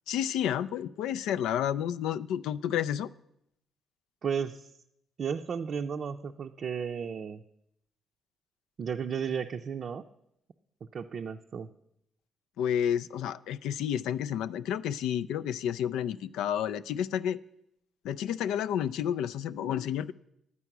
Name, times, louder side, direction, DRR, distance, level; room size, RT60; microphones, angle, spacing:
voice 1, 0.1-3.1 12.6-17.4 18.0-20.1, left 9 dB, 90° left, 13 dB, 0.3 m, -30 dB
voice 2, 4.2-4.7 5.2-7.4 8.8-10.0 10.9-11.7, right 7 dB, 55° right, 4 dB, 0.5 m, -34 dB
11.0 x 8.3 x 5.9 m, 0.78 s
cardioid pair, 90°, 0 cm